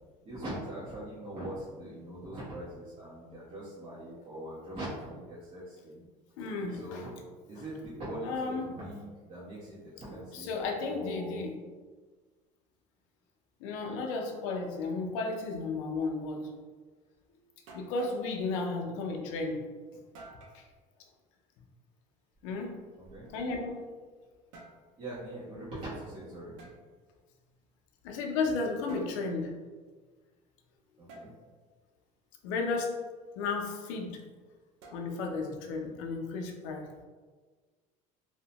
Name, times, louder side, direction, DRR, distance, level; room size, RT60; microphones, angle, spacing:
voice 1, 0.2-6.0 6.7-7.1 7.5-11.4 23.0-23.3 25.0-26.6 31.0-31.3, right 1 dB, 40° right, -10 dB, 0.9 m, -42 dB
voice 2, 6.4-7.1 8.2-8.7 10.3-11.6 13.6-16.5 17.7-19.6 20.5-20.6 22.4-22.7 23.3-23.8 28.0-29.6 32.4-33.0 33.4-34.2 34.9-36.9, left 3 dB, 90° left, 3 dB, 0.4 m, -33 dB
sound 1, 17.2-17.3 17.7-18.3 20.1-20.6 22.3-23.8 24.3-24.8 26.6-26.8 28.9-29.2 31.1-31.3 34.8-35.4, right 2 dB, 90° right, 0.5 m, -52 dB
2.7 x 2.1 x 2.8 m, 1.4 s
supercardioid pair, 110°, 16 cm